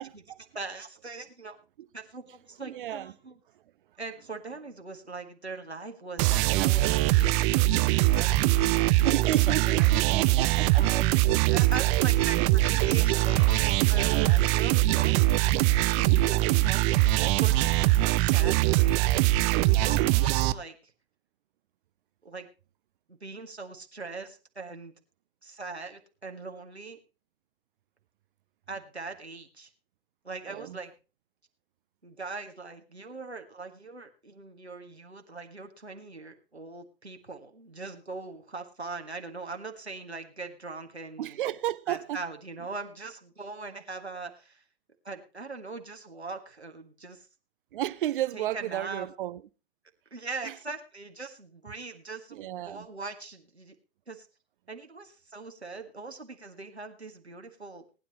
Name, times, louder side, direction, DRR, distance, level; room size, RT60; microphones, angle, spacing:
voice 1, 0.0-0.4 2.6-3.1 9.0-10.8 16.1-16.5 30.5-30.8 41.2-42.2 47.7-49.4 50.4-50.5 52.3-52.9, right 13 dB, 55° right, 0.8 m, -32 dB
voice 2, 0.5-1.6 1.9-3.4 4.0-10.0 10.7-15.2 15.8-16.4 16.6-19.0 19.5-20.9 22.2-22.5 23.1-24.9 25.4-27.0 28.7-29.7 30.2-30.9 32.0-41.4 41.9-44.6 45.0-47.3 48.3-49.1 50.1-53.7 54.1-54.3 54.7-57.8, right 3 dB, 90° right, 1.8 m, -41 dB
sound 1, 6.2-20.5, right 16 dB, 30° right, 0.5 m, -22 dB
19.5 x 10.0 x 3.0 m
figure-of-eight pair, 100°, 32 cm